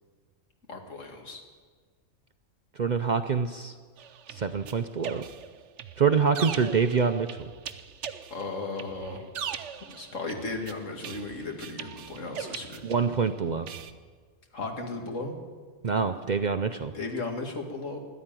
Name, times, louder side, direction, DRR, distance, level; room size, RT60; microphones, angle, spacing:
voice 1, 0.7-1.4 8.3-9.3 9.8-12.8 14.5-15.3 16.9-18.0, left 3 dB, 85° left, 3 dB, 2.3 m, -35 dB
voice 2, 2.8-3.7 4.3-5.2 6.0-7.5 12.8-13.7 15.8-16.9, right 5 dB, 50° right, 9 dB, 0.5 m, -26 dB
sound 1, 4.0-13.3 13.7-13.9, right 8 dB, 70° right, 1.0 m, -40 dB
13.5 x 11.5 x 9.0 m, 1.5 s
omnidirectional pair, 1.3 m